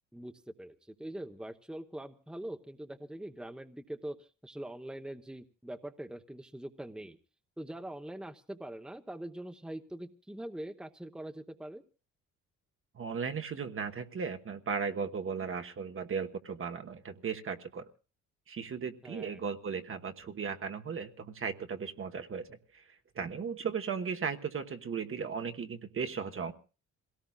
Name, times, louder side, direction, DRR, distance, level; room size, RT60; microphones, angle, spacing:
voice 1, 0.6-7.2 7.6-11.8 19.0-19.4, right 1 dB, 5° right, 6 dB, 0.9 m, -43 dB
voice 2, 12.9-17.9 18.5-22.8 23.1-26.5, right 6 dB, 45° right, 6 dB, 1.3 m, -36 dB
27.5 x 17.5 x 2.4 m, 0.35 s
cardioid pair, 90°, 30 cm